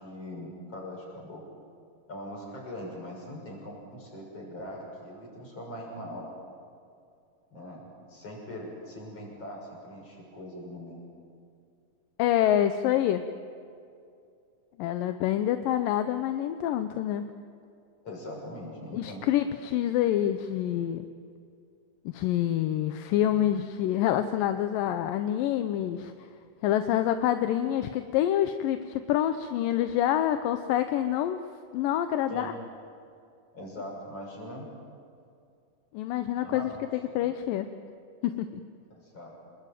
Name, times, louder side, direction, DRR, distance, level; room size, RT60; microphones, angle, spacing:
voice 1, 0.0-1.4 2.1-6.3 7.5-11.0 18.0-19.2 32.3-32.5 33.5-34.7 36.4-36.9 37.3-37.4 39.0-39.3, left 1 dB, 40° left, -1 dB, 7.5 m, -41 dB
voice 2, 12.2-13.2 14.8-17.3 18.9-21.1 22.1-26.3 26.6-31.4 31.7-32.5 35.9-36.7 37.1-37.7 38.2-38.6, left 11 dB, 75° left, 9 dB, 2.3 m, -27 dB
28.5 x 21.0 x 9.2 m, 2.4 s
omnidirectional pair, 4.3 m